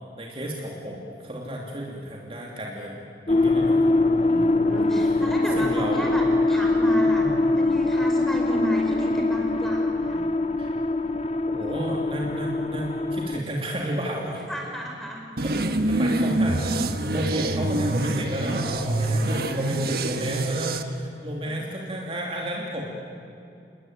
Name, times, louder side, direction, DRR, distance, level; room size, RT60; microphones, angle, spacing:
voice 1, 0.2-3.8 4.3-4.5 5.5-6.1 7.2-7.3 10.6-10.7 11.5-14.4 15.4-22.9, equal, 30° right, -2 dB, 2.8 m, -32 dB
sound 1, 3.3-13.4, left 2 dB, 35° left, 0.9 m, -23 dB
voice 2, 4.0-10.3 14.5-15.2 19.0-19.8, equal, ahead, 0 dB, 5.2 m, -33 dB
sound 2, 15.4-20.8, right 2 dB, 55° right, 1.5 m, -25 dB
29.0 x 20.5 x 9.4 m, 2.6 s
head